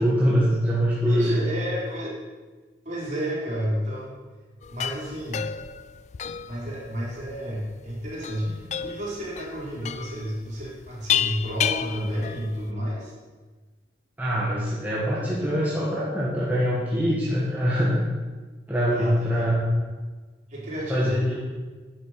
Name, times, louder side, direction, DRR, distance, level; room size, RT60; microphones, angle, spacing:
voice 1, 0.0-1.4 14.2-18.0 18.7-19.6 20.9-21.4, equal, 10° right, -7 dB, 1.5 m, -23 dB
voice 2, 1.1-2.2 2.8-4.1 4.7-5.5 6.5-13.1 18.9-19.5 20.5-21.3, equal, 40° right, -6 dB, 4.0 m, -31 dB
sound 1, 4.6-12.7, left 9 dB, 40° left, 0.3 m, -31 dB
10.0 x 7.6 x 5.9 m, 1.3 s
head